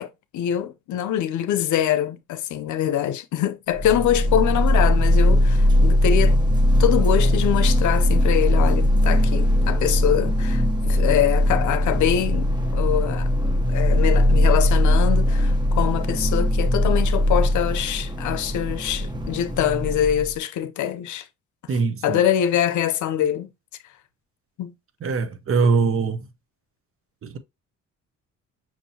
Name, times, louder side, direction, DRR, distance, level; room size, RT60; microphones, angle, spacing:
voice 1, 0.0-6.4 6.8-12.5 12.7-13.3 13.7-21.3 22.0-23.5 24.6-24.7, left 10 dB, 75° left, 0.6 m, -24 dB
sound 1, 3.7-20.3, left 1 dB, 15° right, 0.8 m, -20 dB
voice 2, 21.7-22.2 25.0-26.2 27.2-27.4, right 4 dB, 45° right, 0.8 m, -22 dB
5.9 x 2.7 x 2.7 m
cardioid pair, 90°, 30 cm